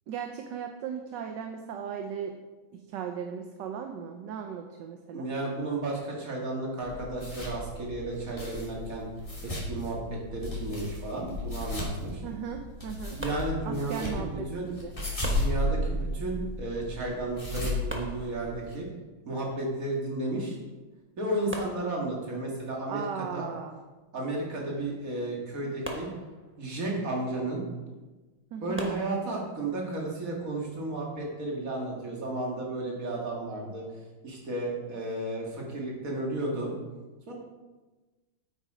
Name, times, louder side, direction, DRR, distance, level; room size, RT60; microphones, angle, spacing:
voice 1, 0.1-2.3 2.7-5.3 12.2-13.2 13.6-14.9 22.9-23.8 28.5-28.8, right 7 dB, 65° right, 5 dB, 1.3 m, -37 dB
voice 2, 5.1-9.1 9.4-12.2 13.1-14.7 15.4-18.9 19.3-20.6 21.2-23.0 23.3-23.5 24.1-26.1 26.6-27.6 28.6-33.8 34.2-36.7 37.3-37.4, right 2 dB, 40° right, -2 dB, 2.4 m, -33 dB
sound 1, 6.8-18.7, left 1 dB, 15° left, 2.9 m, -35 dB
sound 2, 13.2-14.2 15.2-16.2 17.9-18.9 20.5-20.6 21.0-21.1 21.5-22.6 25.8-26.8 28.8-29.7, right 1 dB, 10° right, 0.6 m, -42 dB
8.5 x 8.4 x 5.0 m, 1.2 s
omnidirectional pair, 2.3 m